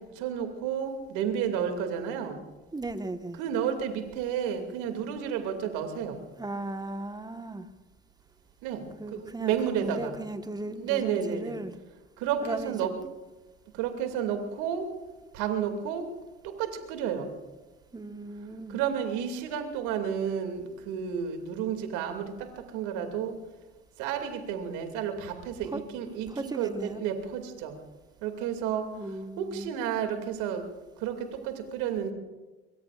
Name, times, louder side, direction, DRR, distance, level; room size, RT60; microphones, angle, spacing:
voice 1, 0.2-2.4 3.4-6.2 8.6-8.8 9.1-10.2 10.6-11.6 12.2-12.9 13.8-14.9 15.3-16.0 16.6-17.3 18.7-22.3 22.7-23.3 24.0-27.8 28.2-28.8 29.4-30.6 31.0-32.1, right 8 dB, 70° right, 6 dB, 2.6 m, -31 dB
voice 2, 2.7-3.4 6.4-7.7 9.0-11.7 12.4-12.9 17.9-18.8 25.7-25.8 26.3-27.0 29.0-29.8, right 2 dB, 15° right, 8 dB, 1.5 m, -36 dB
23.5 x 23.0 x 2.5 m, 1.2 s
hypercardioid pair, 60°, 31 cm